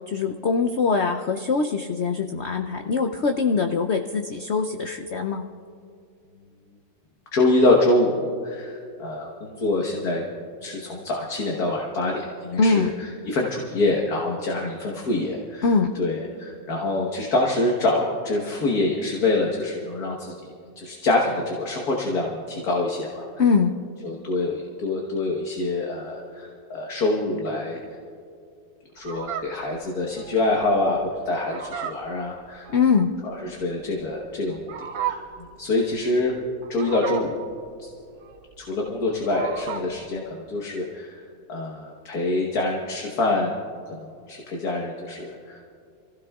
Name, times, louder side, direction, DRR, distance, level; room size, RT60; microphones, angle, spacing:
voice 1, 0.1-5.5 12.6-12.9 15.6-15.9 23.4-23.7 32.7-33.1, left 5 dB, 75° left, 5 dB, 0.6 m, -22 dB
voice 2, 7.3-10.2 10.6-20.3 20.7-23.2 24.0-27.8 28.9-32.7 33.2-36.3 36.7-37.4 37.8-37.9 38.6-41.2 41.5-43.5 44.0-45.6, left 2 dB, 60° left, -1 dB, 1.7 m, -25 dB
Fowl, 29.0-40.1, right 9 dB, 65° right, 1.2 m, -36 dB
27.5 x 16.0 x 2.4 m, 2.3 s
omnidirectional pair, 1.9 m